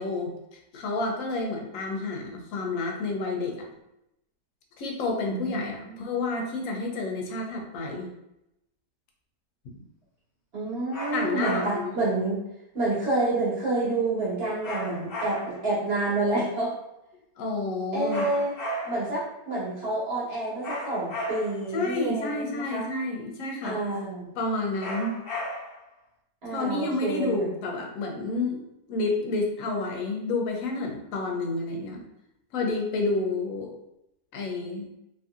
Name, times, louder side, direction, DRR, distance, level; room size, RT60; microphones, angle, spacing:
voice 1, 0.0-3.7 4.8-8.1 11.1-12.0 17.4-18.3 21.7-23.8 24.4-25.1 26.5-28.6 28.9-32.0 32.5-33.7 34.3-34.9, left 3 dB, 70° left, 1 dB, 1.0 m, -30 dB
voice 2, 5.3-6.0 10.5-12.4 12.7-16.7 17.9-18.5 18.8-22.8 23.6-24.3 26.4-27.6, right 2 dB, 50° right, -7 dB, 1.3 m, -28 dB
sound 1, 10.9-12.0 14.6-15.7 18.1-19.2 20.6-21.7 24.8-25.9, equal, 55° left, 0.7 m, -34 dB
2.8 x 2.6 x 2.4 m, 0.85 s
omnidirectional pair, 1.5 m